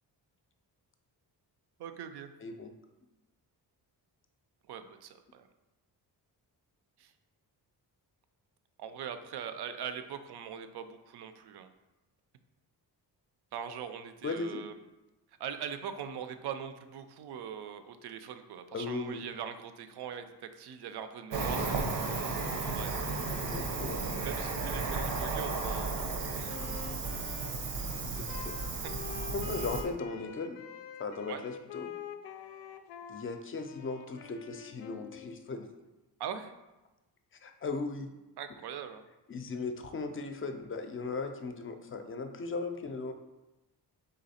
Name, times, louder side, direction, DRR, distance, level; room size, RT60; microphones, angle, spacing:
voice 1, 1.8-2.3 4.7-5.5 7.0-7.1 8.8-11.7 13.5-14.7 15.4-22.0 22.6-23.1 24.2-26.7 28.8-29.2 31.3-31.4 36.2-36.5 38.4-39.0, right 8 dB, 65° right, 10 dB, 0.5 m, -42 dB
voice 2, 2.4-2.7 14.2-14.6 18.7-19.2 23.3-24.0 28.0-28.5 29.3-30.6 31.0-31.9 33.1-35.7 37.4-38.1 39.3-43.1, left 4 dB, 30° left, 6 dB, 0.4 m, -37 dB
Cricket, 21.3-29.8, right 3 dB, 85° right, 0.9 m, -34 dB
Wind instrument woodwind instrument, 26.5-35.5, left 8 dB, 90° left, 0.5 m, -46 dB
3.9 x 3.3 x 4.1 m, 1.0 s
cardioid pair, 110°, 42 cm